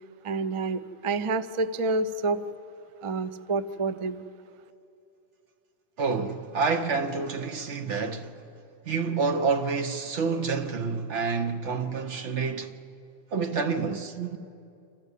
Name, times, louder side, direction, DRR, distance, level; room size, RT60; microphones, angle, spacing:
voice 1, 0.2-2.4 3.0-4.3, right 3 dB, 40° right, 0.5 m, -28 dB
voice 2, 6.0-8.3 8.8-12.8 13.3-14.4, right 4 dB, 75° right, 1.3 m, -28 dB
28.0 x 13.5 x 8.3 m
omnidirectional pair, 1.2 m